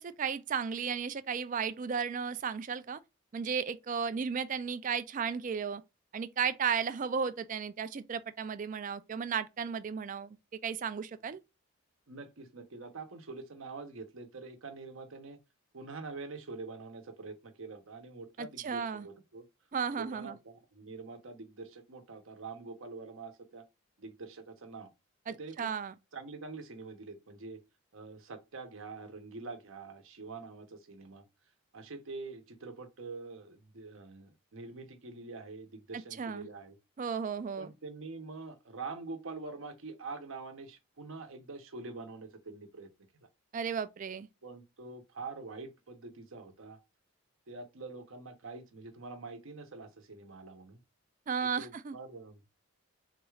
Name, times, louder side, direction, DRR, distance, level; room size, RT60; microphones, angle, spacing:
voice 1, 0.0-3.0 3.3-5.8 6.1-10.4 10.6-11.4 18.4-19.1 19.7-20.4 25.3-25.9 36.2-36.5 37.0-37.7 43.5-44.3 51.3-52.0, right 6 dB, 35° right, 0.3 m, -34 dB
voice 2, 12.1-15.4 15.7-19.4 20.0-23.7 24.0-24.9 25.3-25.7 26.1-27.6 27.9-31.2 31.7-36.8 37.6-42.9 44.4-46.8 47.5-50.8 51.4-52.4, right 3 dB, 65° right, 0.8 m, -45 dB
3.9 x 2.3 x 3.1 m
head